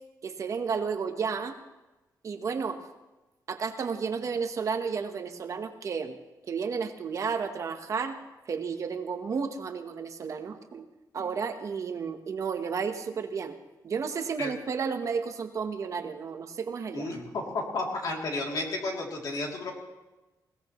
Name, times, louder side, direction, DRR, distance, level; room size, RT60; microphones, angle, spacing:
voice 1, 0.2-1.5 2.2-2.8 3.5-6.2 6.5-8.2 8.5-10.8 11.1-13.5 13.8-17.1, right 5 dB, 50° right, 7 dB, 1.0 m, -32 dB
voice 2, 16.9-19.7, left 2 dB, 65° left, 0 dB, 2.8 m, -32 dB
21.0 x 17.5 x 3.1 m, 1.1 s
wide cardioid pair, 165°, 7 cm